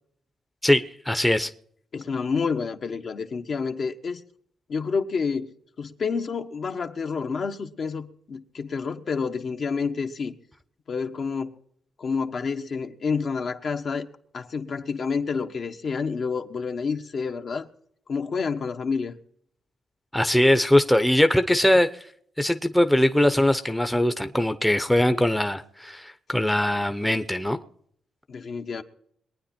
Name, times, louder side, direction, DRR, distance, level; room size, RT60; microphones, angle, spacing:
voice 1, 0.6-1.5 20.1-21.9 22.4-27.6, left 1 dB, 5° left, 0.8 m, -21 dB
voice 2, 1.9-4.2 4.7-10.3 10.9-11.5 12.0-14.1 14.3-17.7 18.1-19.2 28.3-28.8, left 5 dB, 55° left, 1.2 m, -29 dB
22.5 x 9.4 x 4.4 m
cardioid pair, 100°, 0 cm